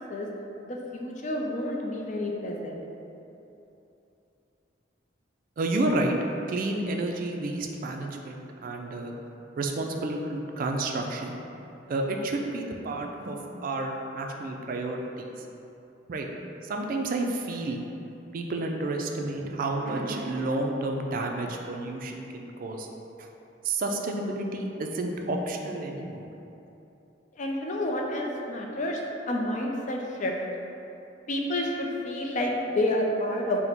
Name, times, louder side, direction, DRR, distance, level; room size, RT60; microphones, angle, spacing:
voice 1, 0.6-2.8 27.3-29.0 29.3-30.3 31.3-33.6, left 1 dB, 45° left, 0 dB, 0.4 m, -29 dB
voice 2, 5.6-6.2 6.5-9.1 9.6-11.3 11.9-15.3 16.1-16.3 16.6-17.8 18.3-22.9 23.2-23.3 23.6-26.3, right 2 dB, 50° right, 2 dB, 0.3 m, -30 dB
4.0 x 2.1 x 4.4 m, 2.9 s
head